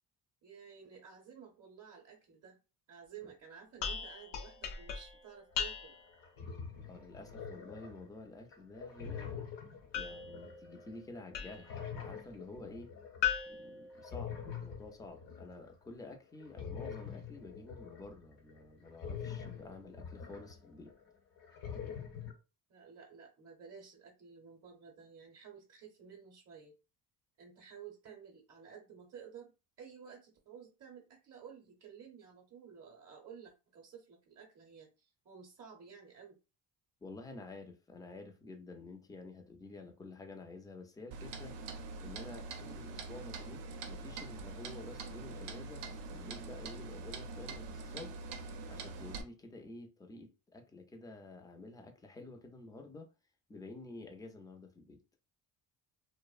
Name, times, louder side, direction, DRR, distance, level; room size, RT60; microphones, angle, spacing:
voice 1, 0.4-2.6 2.9-6.0 22.7-26.8 27.4-36.4, right 7 dB, 40° right, 0.7 m, -53 dB
sound 1, 3.8-6.2 9.9-11.8 13.2-14.7, left 8 dB, 85° left, 0.7 m, -39 dB
sound 2, 5.6-5.7 6.1-8.1 8.5-11.2 11.5-13.3 13.9-15.7 16.4-21.1 21.4-22.3, left 7 dB, 55° left, 0.9 m, -45 dB
voice 2, 6.9-9.3 9.9-12.9 13.5-20.9 37.0-41.6 42.0-48.2 48.7-53.1 53.5-55.0, left 2 dB, 10° left, 0.4 m, -50 dB
Clock, 41.1-49.2, right 3 dB, 85° right, 0.6 m, -44 dB
2.5 x 2.1 x 2.3 m
cardioid pair, 85°, 41 cm